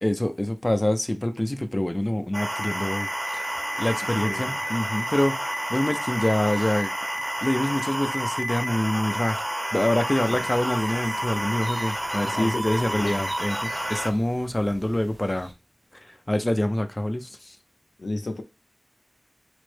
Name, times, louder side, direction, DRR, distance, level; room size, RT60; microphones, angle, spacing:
voice 1, 0.0-3.5 3.8-5.4 5.7-6.9 7.2-9.4 9.7-15.5 16.1-17.6, left 1 dB, 25° left, 0.3 m, -26 dB
sound 1, 2.3-14.1, right 1 dB, 20° right, 0.6 m, -30 dB
Wind instrument woodwind instrument, 3.3-8.0, right 1 dB, 65° right, 0.5 m, -46 dB
voice 2, 4.2-4.6 10.3-10.5 12.1-13.3 18.0-18.4, left 2 dB, 85° left, 0.5 m, -33 dB
sound 2, 10.2-15.5, right 1 dB, 85° right, 0.8 m, -47 dB
4.2 x 2.0 x 3.1 m
wide cardioid pair, 55°, 0 cm